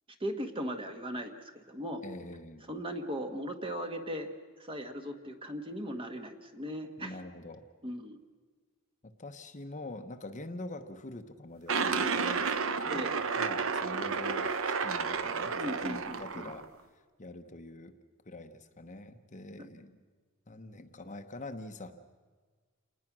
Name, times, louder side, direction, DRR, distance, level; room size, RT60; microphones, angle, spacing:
voice 1, 0.2-2.0 2.7-4.3 4.6-7.2 7.8-8.2 12.9-13.1 15.5-16.5, equal, 25° right, 5 dB, 1.6 m, -38 dB
voice 2, 2.0-2.7 7.0-7.7 9.0-12.6 12.8-16.7 16.9-18.0 18.2-20.0 20.5-21.9, left 2 dB, 35° left, 7 dB, 1.0 m, -45 dB
sound 1, 11.7-16.6, right 5 dB, 65° right, 1.0 m, -31 dB
28.0 x 19.5 x 6.2 m, 1.5 s
head